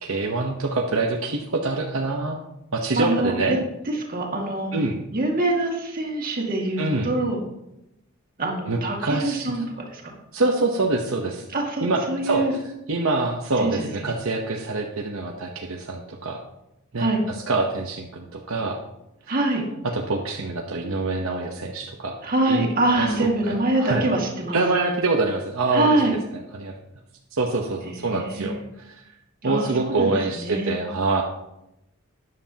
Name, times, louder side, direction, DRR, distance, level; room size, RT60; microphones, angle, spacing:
voice 1, 0.0-2.4 2.7-3.6 4.7-5.0 6.8-7.1 8.7-9.6 10.3-11.4 11.8-12.5 12.9-16.4 16.9-18.8 19.9-22.1 22.5-22.7 23.0-24.0 24.5-26.2 26.5-26.7 27.3-28.6 28.8-29.0 29.4-31.2, right 3 dB, 70° right, 1 dB, 0.9 m, -25 dB
voice 2, 3.0-3.6 3.9-4.7 5.1-7.4 8.4-10.1 11.5-12.5 13.6-14.1 17.0-17.2 19.3-19.6 22.2-24.6 25.7-26.1 27.8-28.6 29.4-30.7, right 2 dB, 40° right, 0 dB, 2.0 m, -25 dB
13.0 x 9.7 x 2.9 m, 0.88 s
head